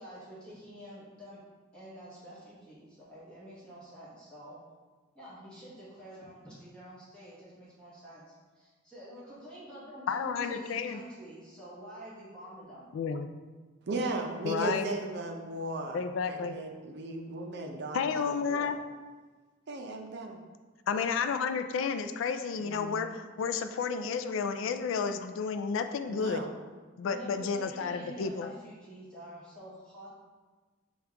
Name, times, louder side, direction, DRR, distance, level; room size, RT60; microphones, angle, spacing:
voice 1, 0.0-1.4 1.7-4.6 5.1-12.9 27.1-30.1, equal, 5° left, -10 dB, 1.3 m, -48 dB
voice 2, 10.1-11.0 12.9-13.3 14.4-14.9 15.9-16.6 17.9-18.8 20.9-26.4 27.0-28.5, left 5 dB, 75° left, 8 dB, 0.3 m, -31 dB
voice 3, 13.9-16.0 16.3-18.7 19.7-20.4 22.6-23.1 26.1-26.5, right 2 dB, 60° right, 3 dB, 0.6 m, -36 dB
6.4 x 2.4 x 3.4 m, 1.3 s
head